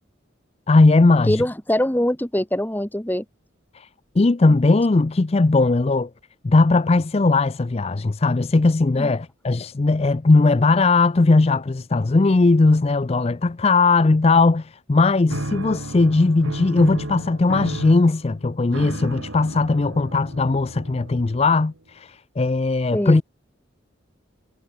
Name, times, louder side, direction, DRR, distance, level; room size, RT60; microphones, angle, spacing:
voice 1, 0.7-1.4 3.7-3.9 4.2-6.1 6.4-23.2, left 3 dB, 30° left, 0.4 m, -18 dB
voice 2, 1.2-3.2 4.5-4.6 9.0-9.1 22.9-23.2, left 1 dB, 10° left, 1.2 m, -23 dB
sound 1, 15.3-21.8, right 1 dB, 85° right, 3.3 m, -33 dB
head